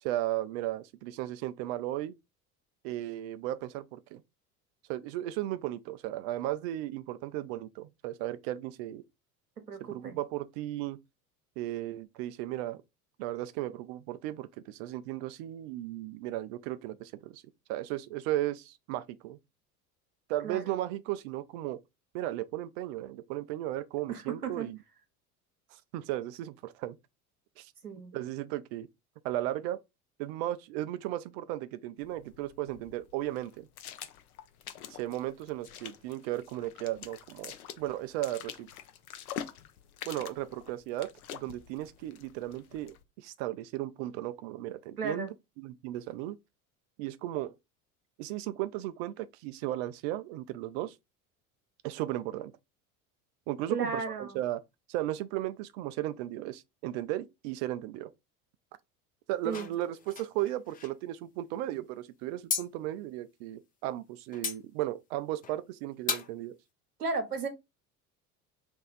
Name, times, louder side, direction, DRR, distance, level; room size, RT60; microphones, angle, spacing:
voice 1, 0.0-2.1 2.8-4.2 4.9-9.0 9.8-11.0 11.6-12.8 13.2-17.4 17.7-19.4 20.3-21.8 22.1-24.8 25.9-27.0 27.6-27.7 28.1-28.9 29.2-29.8 30.2-33.7 34.9-38.7 40.1-45.3 45.6-46.4 47.0-47.6 48.2-50.9 51.8-52.5 53.5-54.6 54.9-58.1 59.3-66.6, right 14 dB, 45° right, 0.5 m, -35 dB
voice 2, 9.7-10.2 20.4-20.8 24.1-24.7 27.8-28.1 45.0-45.3 53.7-54.4 59.4-59.7 67.0-67.5, right 4 dB, 85° right, 0.9 m, -34 dB
sound 1, 32.0-43.0, left 9 dB, 70° left, 0.7 m, -46 dB
sound 2, 59.5-60.9 62.5-62.7 64.3-64.6 65.4-65.6 66.1-66.3, left 6 dB, 20° left, 0.5 m, -35 dB
3.1 x 2.6 x 3.9 m
figure-of-eight pair, 70°, 45 cm